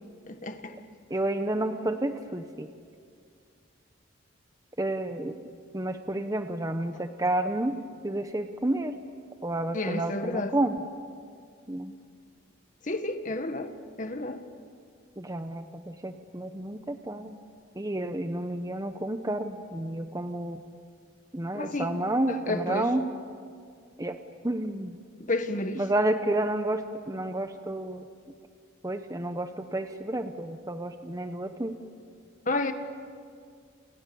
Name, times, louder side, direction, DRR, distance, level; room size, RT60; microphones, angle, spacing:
voice 1, 0.3-0.8 9.7-10.6 12.8-14.4 21.5-22.0 22.3-22.9 25.2-25.9 32.5-32.7, left 2 dB, 40° left, 1.7 m, -31 dB
voice 2, 1.1-2.7 4.8-5.4 5.7-7.7 8.0-9.0 9.4-10.8 11.7-11.9 15.2-17.4 17.8-20.6 21.3-23.0 24.0-24.2 24.4-25.0 25.8-28.0 28.8-31.7, right 1 dB, 15° right, 0.9 m, -30 dB
29.0 x 29.0 x 7.1 m
head